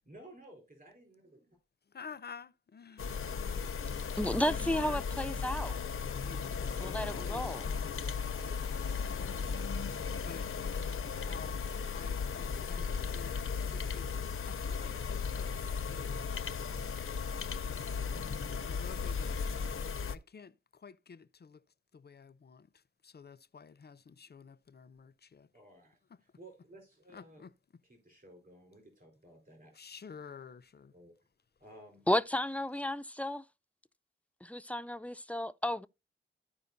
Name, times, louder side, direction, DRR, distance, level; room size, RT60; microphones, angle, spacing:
voice 1, 0.0-1.6 25.5-27.4 27.8-29.7 30.9-31.1 31.6-32.0, right 1 dB, 45° right, 4.5 m, -56 dB
voice 2, 1.9-3.2 3.9-5.0 6.2-7.6 7.9-9.4 10.3-10.5 11.2-14.1 14.4-15.5 15.9-16.7 18.1-21.6 21.9-22.7 23.0-25.5 27.1-27.5 29.7-30.9, left 6 dB, 50° left, 0.6 m, -51 dB
sound 1, 3.0-20.1, left 6 dB, 85° left, 0.7 m, -36 dB
voice 3, 4.2-5.8 6.8-7.6 32.1-33.4 34.4-35.9, left 1 dB, 5° left, 0.4 m, -33 dB
14.5 x 5.0 x 2.6 m
wide cardioid pair, 70°, 21 cm